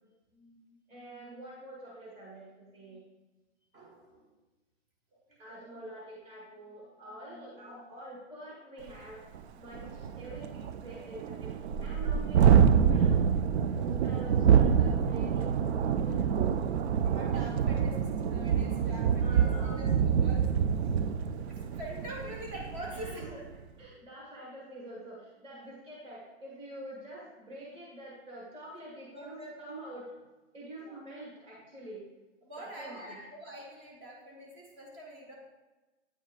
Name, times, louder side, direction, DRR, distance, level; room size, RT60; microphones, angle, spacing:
voice 1, 0.3-3.0 5.4-9.2 9.6-11.5 11.8-13.3 13.8-16.3 19.1-19.8 22.9-23.4 23.8-30.0 30.5-32.0 32.6-33.3, right 1 dB, 15° right, -4 dB, 1.4 m, -46 dB
voice 2, 3.7-4.2 5.5-5.7 9.8-10.1 14.2-14.4 17.0-20.4 21.4-23.2 27.4-27.6 29.1-29.5 32.4-35.3, equal, 35° right, -2 dB, 1.4 m, -45 dB
Thunderstorm, 8.9-9.0 9.3-9.4 9.7-23.4, right 7 dB, 60° right, 0.4 m, -26 dB
8.9 x 4.5 x 2.4 m, 1.1 s
hypercardioid pair, 145°, 36 cm